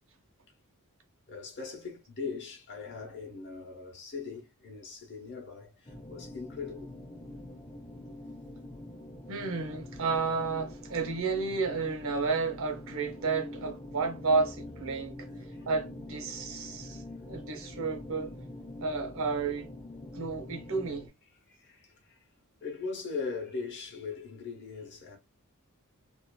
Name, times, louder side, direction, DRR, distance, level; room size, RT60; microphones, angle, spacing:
voice 1, 1.3-6.9 7.8-7.9 15.5-15.7 16.3-16.4 16.8-16.9 21.4-22.3 22.6-25.2, left 4 dB, 55° left, 1.0 m, -40 dB
sound 1, 5.9-21.1, left 1 dB, 20° left, 0.6 m, -45 dB
voice 2, 9.3-15.2 15.7-17.0 17.3-18.3 18.8-19.7 20.1-21.1, right 4 dB, 65° right, 0.7 m, -31 dB
2.7 x 2.5 x 2.2 m
head